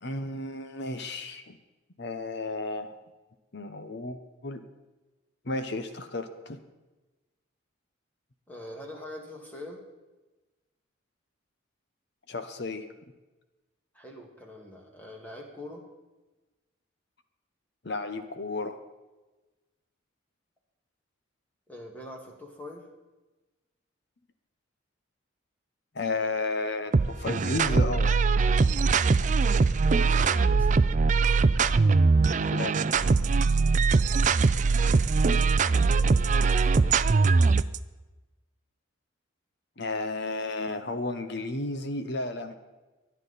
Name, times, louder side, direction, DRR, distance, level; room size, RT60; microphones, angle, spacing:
voice 1, 0.0-1.6 2.0-3.0 3.5-4.6 5.5-6.6 12.3-12.9 17.8-18.8 25.9-28.1 32.5-32.8 39.8-42.5, left 2 dB, 55° left, 8 dB, 0.9 m, -33 dB
voice 2, 8.5-9.8 13.9-15.8 21.7-22.9 29.8-31.0 35.9-37.0, left 1 dB, 10° left, 0 dB, 1.9 m, -44 dB
sound 1, 26.9-37.8, right 4 dB, 35° right, 0.4 m, -22 dB
24.0 x 9.7 x 4.1 m, 1.1 s
head